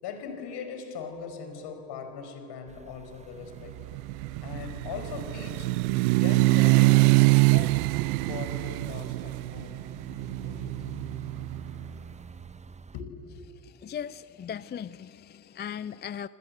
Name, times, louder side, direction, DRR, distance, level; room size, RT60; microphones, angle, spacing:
voice 1, 0.0-3.8 4.4-5.7 6.1-9.8 10.4-11.0 12.9-13.4, left 6 dB, 60° left, 6 dB, 5.2 m, -40 dB
sound 1, 2.7-13.0, right 4 dB, 15° right, 0.8 m, -47 dB
sound 2, 3.7-11.7, right 25 dB, 65° right, 0.5 m, -24 dB
voice 2, 13.6-16.3, left 8 dB, 20° left, 18 dB, 0.5 m, -38 dB
27.5 x 26.0 x 7.8 m, 2.8 s
hypercardioid pair, 60°, 47 cm